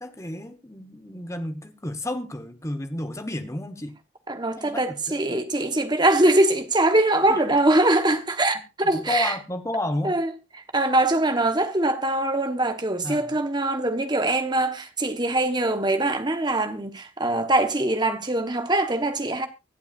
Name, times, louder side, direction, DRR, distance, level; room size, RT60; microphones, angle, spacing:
voice 1, 0.0-4.0 4.6-4.9 5.2-5.4 7.3-7.4 8.9-10.1 13.0-13.3, left 1 dB, 15° left, 1.1 m, -31 dB
voice 2, 4.3-9.4 10.0-10.3 10.7-19.5, right 2 dB, 20° right, 1.1 m, -22 dB
24.0 x 8.1 x 2.5 m
head